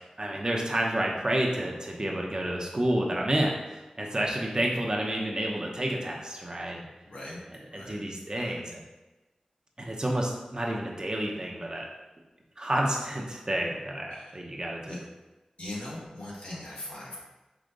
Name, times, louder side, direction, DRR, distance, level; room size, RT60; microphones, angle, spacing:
voice 1, 0.2-6.8 7.5-8.8 9.8-11.8 12.6-15.0, right 1 dB, 35° right, -1 dB, 0.8 m, -30 dB
voice 2, 7.1-7.4 7.7-8.0 8.4-8.5 14.1-14.3 14.9-15.0 15.6-17.2, left 1 dB, 80° left, -6 dB, 1.5 m, -40 dB
4.9 x 2.8 x 3.9 m, 1.1 s
wide cardioid pair, 75°, 2 cm